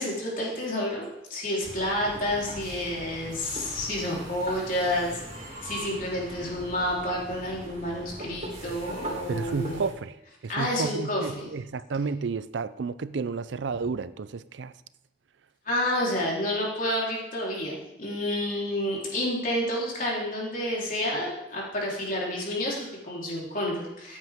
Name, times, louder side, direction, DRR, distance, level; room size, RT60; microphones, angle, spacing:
voice 1, 0.0-5.2 5.6-9.8 10.5-11.5 15.7-24.2, left 1 dB, 45° left, -4 dB, 3.7 m, -29 dB
sound 1, 1.6-9.9, right 1 dB, 40° right, 4.2 m, -40 dB
voice 2, 9.3-10.2 10.4-14.7, right 4 dB, 85° right, 15 dB, 0.5 m, -31 dB
14.5 x 8.6 x 3.6 m, 0.92 s
head